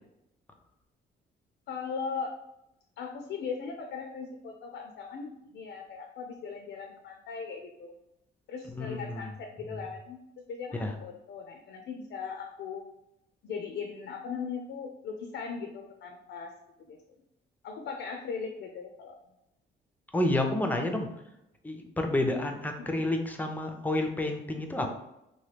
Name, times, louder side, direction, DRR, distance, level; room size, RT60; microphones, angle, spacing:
voice 1, 1.7-2.3 3.0-7.9 8.5-10.2 10.5-12.8 13.4-16.5 16.9-17.0 17.6-19.1 22.8-23.0, left 5 dB, 70° left, 3 dB, 0.4 m, -38 dB
voice 2, 8.7-9.2 10.7-10.9 20.1-21.1 21.6-24.9, left 1 dB, 10° left, 4 dB, 0.5 m, -29 dB
2.9 x 2.2 x 3.3 m, 0.86 s
cardioid pair, 90°, 20 cm